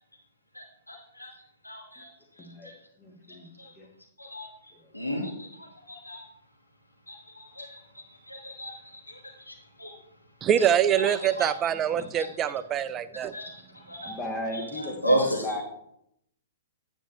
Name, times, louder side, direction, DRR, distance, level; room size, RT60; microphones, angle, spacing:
voice 1, 0.5-1.3 1.6-2.1 2.4-2.7 3.3-3.7 4.2-6.2 7.1-9.9 10.6-10.7 11.0-11.5 12.1-12.3 13.3-14.1 14.5-15.6, right 1 dB, 85° left, -3 dB, 2.4 m, -34 dB
voice 2, 2.4-2.7 3.0-3.9 4.8-4.9 11.9-12.1 14.0-15.6, left 1 dB, 20° left, 2 dB, 1.7 m, -36 dB
voice 3, 10.4-13.4, right 9 dB, 20° right, 13 dB, 0.4 m, -24 dB
10.0 x 8.7 x 2.7 m, 0.76 s
figure-of-eight pair, 115°, 0 cm